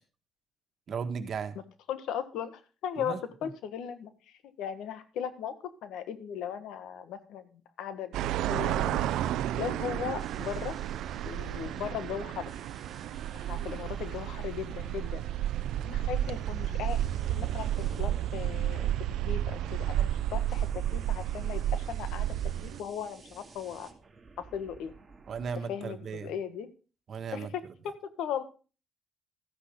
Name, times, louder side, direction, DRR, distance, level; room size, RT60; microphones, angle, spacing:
voice 1, 0.9-1.6 3.1-3.2 25.3-26.3 27.1-27.5, right 6 dB, 55° right, 1.6 m, -35 dB
voice 2, 1.9-8.1 8.5-9.1 9.6-10.8 11.2-12.5 13.3-15.3 15.8-17.0 17.3-22.3 22.6-23.9 24.4-24.9 25.7-26.7 27.3-28.4, left 8 dB, 85° left, 1.5 m, -37 dB
sound 1, 8.1-22.8, right 12 dB, 85° right, 0.5 m, -32 dB
sound 2, 10.2-25.5, right 4 dB, 30° right, 2.4 m, -53 dB
14.0 x 9.9 x 3.8 m
cardioid pair, 90°, 0 cm